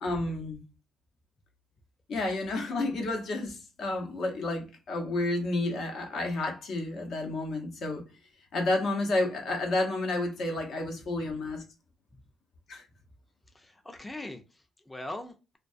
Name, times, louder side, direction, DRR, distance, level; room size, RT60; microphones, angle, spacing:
voice 1, 0.0-0.6 2.1-8.0 8.5-11.6 12.7-12.8, left 2 dB, 70° left, 0.8 m, -30 dB
voice 2, 13.5-15.6, left 1 dB, 15° left, 0.4 m, -41 dB
2.2 x 2.2 x 2.4 m
cardioid pair, 90°, 0 cm